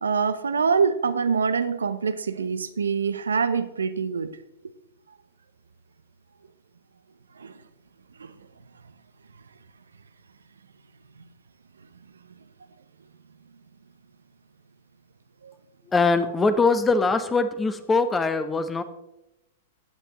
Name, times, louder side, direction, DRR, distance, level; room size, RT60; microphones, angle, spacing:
voice 1, 0.0-4.3 7.4-7.5 8.2-8.3 15.4-15.5, right 5 dB, 85° right, 11 dB, 0.7 m, -25 dB
voice 2, 15.9-18.8, left 3 dB, 15° left, 10 dB, 1.0 m, -22 dB
14.5 x 8.8 x 3.0 m, 0.90 s
hypercardioid pair, 110°, 0 cm